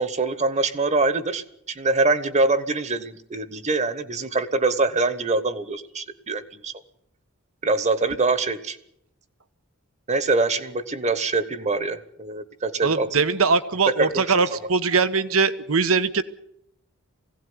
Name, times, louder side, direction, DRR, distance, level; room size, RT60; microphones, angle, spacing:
voice 1, 0.0-6.7 7.6-8.8 10.1-13.1 13.9-14.6, right 3 dB, 35° right, 13 dB, 1.3 m, -24 dB
voice 2, 12.8-16.2, right 4 dB, 75° right, 12 dB, 1.2 m, -21 dB
21.5 x 17.0 x 9.6 m, 0.76 s
head